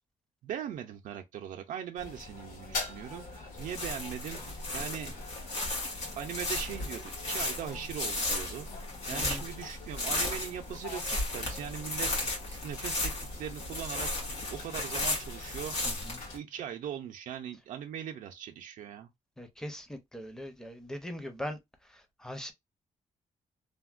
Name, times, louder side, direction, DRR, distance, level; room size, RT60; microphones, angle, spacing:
voice 1, 0.4-3.3 3.6-5.1 6.2-8.7 9.1-15.8 16.3-19.1, right 9 dB, 80° right, 0.4 m, -40 dB
sound 1, 2.0-16.4, left 3 dB, 75° left, 1.7 m, -44 dB
sound 2, 3.6-16.2, left 2 dB, 55° left, 1.9 m, -35 dB
voice 2, 9.1-9.4 15.8-16.2 19.4-21.6 21.9-22.5, equal, 5° left, 0.5 m, -41 dB
3.3 x 2.1 x 2.3 m
wide cardioid pair, 160°, 13 cm